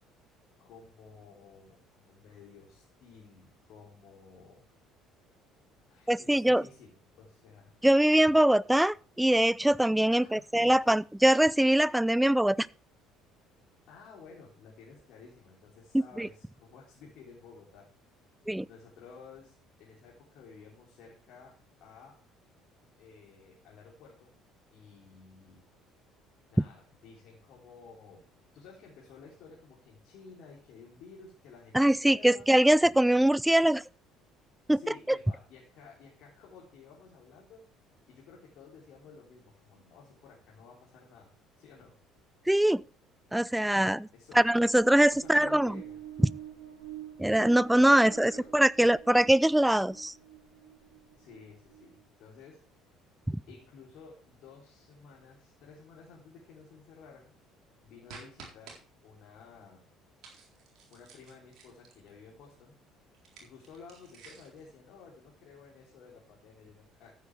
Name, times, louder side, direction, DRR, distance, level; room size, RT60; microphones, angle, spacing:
voice 1, 0.6-4.7 5.9-7.7 10.0-10.8 13.9-17.9 18.7-22.2 23.0-24.3 24.7-25.7 26.5-28.3 28.5-32.5 34.7-37.7 38.1-41.9 44.1-44.5 45.1-46.0 47.8-48.6 51.1-52.6 53.5-57.3 57.8-58.8 59.0-59.9 60.9-62.8 63.4-67.2, left 5 dB, 55° left, 3.5 m, -53 dB
voice 2, 6.1-6.6 7.8-12.7 15.9-16.3 18.5-18.7 31.7-33.8 34.7-34.8 42.5-42.8 43.3-44.1 44.3-45.8 47.2-50.1 53.3-53.4, right 1 dB, 5° right, 0.4 m, -23 dB
sound 1, 44.5-52.1, right 11 dB, 80° right, 2.3 m, -48 dB
sound 2, 58.1-58.8 60.2-62.1 63.1-64.6, right 4 dB, 55° right, 4.0 m, -51 dB
14.0 x 9.4 x 3.5 m
figure-of-eight pair, 55°, 0 cm